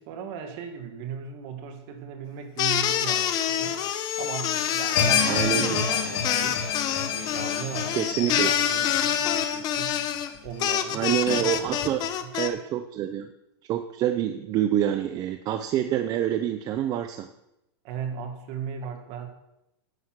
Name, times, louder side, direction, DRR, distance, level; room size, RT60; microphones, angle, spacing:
voice 1, 0.0-6.7 7.0-10.1 10.4-11.0 11.3-12.3 17.8-19.3, right 7 dB, 45° right, 5 dB, 1.9 m, -38 dB
sound 1, 2.6-12.5, left 10 dB, 30° left, 0.8 m, -27 dB
Sawing, 2.8-9.2, left 8 dB, 80° left, 2.6 m, -38 dB
sound 2, 5.0-10.2 10.5-10.6 11.3-11.4, left 7 dB, 55° left, 3.1 m, -28 dB
voice 2, 5.2-5.9 8.0-8.5 10.9-12.0 12.3-13.3 13.6-17.3, right 11 dB, 30° right, 8 dB, 0.5 m, -27 dB
9.8 x 8.2 x 5.9 m, 0.87 s
supercardioid pair, 150°, 14 cm